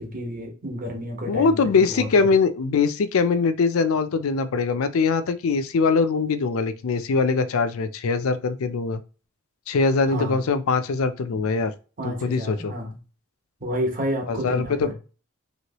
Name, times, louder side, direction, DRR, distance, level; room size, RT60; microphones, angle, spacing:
voice 1, 0.0-2.1 10.1-10.4 12.0-13.0 13.6-14.9, equal, 40° right, 1.1 m, -30 dB
voice 2, 1.3-9.0 9.7-11.7 12.0-12.7 14.3-14.9, left 4 dB, 85° left, 0.4 m, -22 dB
3.1 x 2.9 x 2.9 m
head